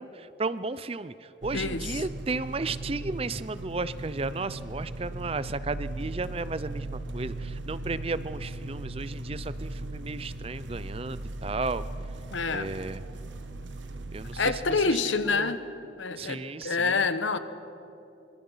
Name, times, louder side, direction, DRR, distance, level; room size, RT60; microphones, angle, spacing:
voice 1, 0.0-11.8 12.5-13.0 14.1-15.5 16.2-17.0, right 3 dB, 30° right, 15 dB, 0.5 m, -34 dB
sound 1, 1.4-14.6, right 2 dB, 75° right, 1.2 m, -38 dB
voice 2, 1.5-2.0 12.3-12.7 14.4-15.6 16.0-17.4, left 4 dB, 90° left, 12 dB, 1.1 m, -27 dB
25.0 x 22.5 x 5.7 m, 2.9 s
head